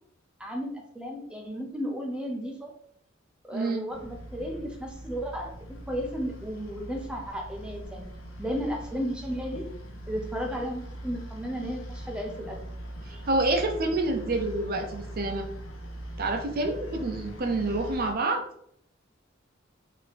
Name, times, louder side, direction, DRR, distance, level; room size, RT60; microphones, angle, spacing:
voice 1, 0.4-2.7 3.5-5.5 5.9-8.1 8.4-9.7 10.1-12.6 13.1-13.2, equal, 5° right, 1 dB, 0.5 m, -34 dB
voice 2, 3.5-3.8 13.1-15.5 16.2-18.4, right 2 dB, 50° right, 4 dB, 0.6 m, -28 dB
sound 1, 3.9-18.1, right 1 dB, 70° left, 0.8 m, -41 dB
4.0 x 2.7 x 3.3 m, 0.68 s
head